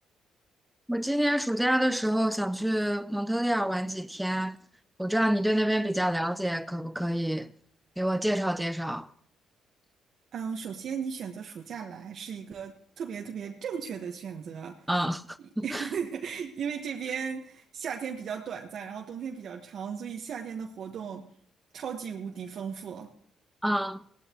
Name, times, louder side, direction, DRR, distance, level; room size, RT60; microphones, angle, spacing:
voice 1, 0.9-4.6 5.0-7.5 8.0-9.1 14.9-15.9 23.6-24.0, equal, 5° right, 0.5 m, -27 dB
voice 2, 10.3-14.8 15.4-21.3 21.7-23.1, right 7 dB, 65° right, 1.2 m, -36 dB
17.5 x 13.0 x 3.0 m
cardioid pair, 90°, 0 cm